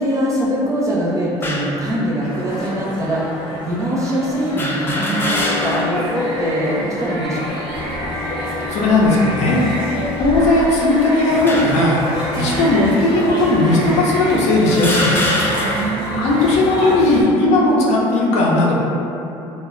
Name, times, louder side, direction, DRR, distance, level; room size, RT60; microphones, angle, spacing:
voice 1, 0.0-7.6 15.6-16.2, right 1 dB, 25° right, -5 dB, 0.7 m, -22 dB
sound 1, 1.4-1.8 2.6-2.7 4.6-6.0 6.5-6.6 7.7-8.1 8.8-9.1 10.0-10.8 11.5-12.0 12.8-13.0 13.9-14.0 14.7-16.0, left 1 dB, 15° left, 0.4 m, -24 dB
sound 2, 2.2-17.2, left 1 dB, 35° left, 0.8 m, -28 dB
sound 3, 4.9-13.1 13.4-16.5, right 2 dB, 65° right, 0.6 m, -33 dB
voice 2, 8.7-9.6 10.2-12.0 12.4-15.4 16.2-18.9, left 2 dB, 65° left, -4 dB, 0.6 m, -16 dB
2.1 x 2.1 x 3.6 m, 2.8 s
supercardioid pair, 90°, 13 cm